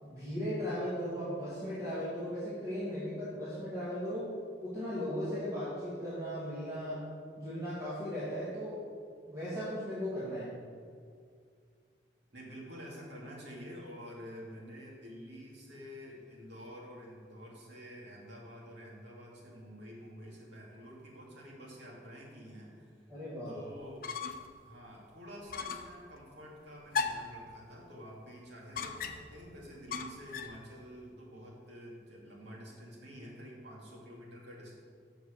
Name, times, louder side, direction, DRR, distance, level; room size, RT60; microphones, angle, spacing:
voice 1, 0.0-4.3 4.6-7.1 7.4-8.8 9.3-10.5 23.1-23.6, equal, 20° right, -11 dB, 2.1 m, -37 dB
voice 2, 12.3-23.2 23.5-24.1 24.6-34.8, equal, 80° right, -4 dB, 2.4 m, -49 dB
sound 1, 23.8-24.6 24.9-25.0 25.5-26.0 26.9-27.4 28.7-29.4 29.9-30.6, left 5 dB, 55° left, 0.5 m, -37 dB
7.0 x 6.4 x 6.6 m, 2.2 s
head